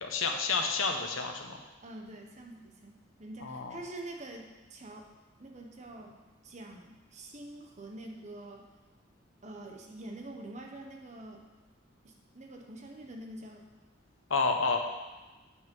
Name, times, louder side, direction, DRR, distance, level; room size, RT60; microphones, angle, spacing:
voice 1, 0.0-1.6 3.4-3.8 14.3-14.8, left 4 dB, 85° left, 4 dB, 1.1 m, -30 dB
voice 2, 1.8-5.1 5.4-6.2 6.4-8.7 9.4-11.4 12.0-13.7, right 1 dB, 35° right, 2 dB, 1.1 m, -46 dB
7.9 x 6.3 x 5.5 m, 1.2 s
head